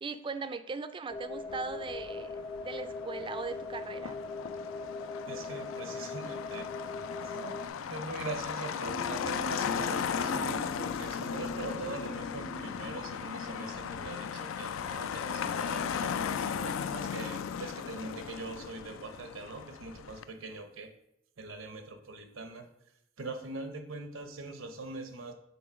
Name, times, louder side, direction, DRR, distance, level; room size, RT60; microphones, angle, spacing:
voice 1, 0.0-4.2, right 4 dB, 25° right, 11 dB, 0.4 m, -39 dB
sound 1, 1.1-7.7, left 3 dB, 25° left, 0.6 m, -40 dB
Motor vehicle (road), 1.5-20.2, left 7 dB, 80° left, 0.4 m, -37 dB
voice 2, 5.3-6.7 7.2-7.6 7.9-20.9 21.4-22.7 23.2-25.3, right 3 dB, 80° right, 8 dB, 0.8 m, -42 dB
sound 2, 8.8-14.9, equal, 60° left, 0.8 m, -44 dB
7.1 x 3.8 x 4.8 m, 0.79 s
head